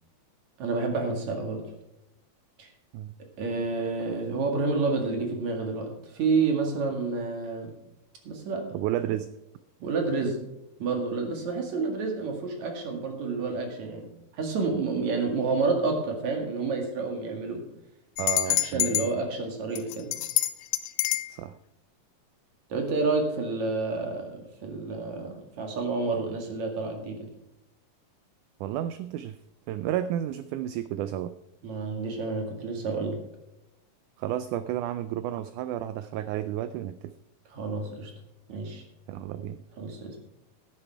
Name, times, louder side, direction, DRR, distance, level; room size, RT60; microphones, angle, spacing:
voice 1, 0.6-1.6 2.6-2.7 3.4-7.7 8.2-8.8 9.8-10.4 10.8-17.7 18.5-20.1 22.7-27.3 31.6-33.2 37.5-38.1 38.5-38.8 39.8-40.2, right 4 dB, 55° right, 3 dB, 3.1 m, -29 dB
voice 2, 8.7-9.3 18.2-19.1 21.3-21.5 28.6-29.4 29.7-31.3 34.2-37.1 39.1-39.6, right 11 dB, 90° right, 13 dB, 1.7 m, -32 dB
sound 1, 18.2-19.1 19.8-21.3, left 15 dB, 80° left, 2.0 m, -26 dB
12.0 x 9.9 x 4.6 m, 0.89 s
omnidirectional pair, 4.1 m